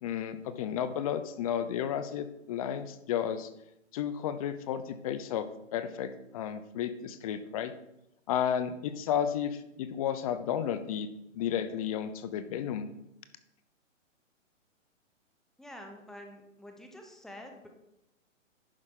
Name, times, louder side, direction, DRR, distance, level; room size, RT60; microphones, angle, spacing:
voice 1, 0.0-3.5 3.9-7.7 8.3-11.1 11.3-12.9, left 9 dB, 30° left, 11 dB, 0.7 m, -32 dB
voice 2, 15.6-17.7, left 1 dB, ahead, 3 dB, 0.9 m, -47 dB
11.0 x 8.7 x 3.8 m, 0.85 s
hypercardioid pair, 140°, 39 cm